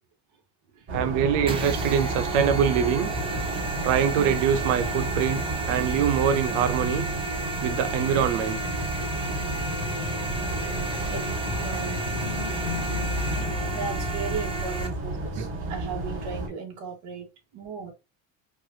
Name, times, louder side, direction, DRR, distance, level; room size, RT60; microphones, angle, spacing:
sound 1, 0.9-16.5, right 1 dB, 35° right, 2.4 m, -31 dB
voice 1, 0.9-3.1 3.8-7.1 7.6-8.6 10.6-10.7, right 8 dB, 85° right, 0.8 m, -24 dB
sound 2, 1.5-14.9, right 3 dB, 15° right, 0.6 m, -34 dB
sound 3, 9.8-15.0 15.5-15.7, left 11 dB, 70° left, 0.8 m, -39 dB
voice 2, 11.1-12.1 13.7-17.9, right 5 dB, 55° right, 1.6 m, -36 dB
4.7 x 2.5 x 2.8 m
cardioid pair, 165°, 36 cm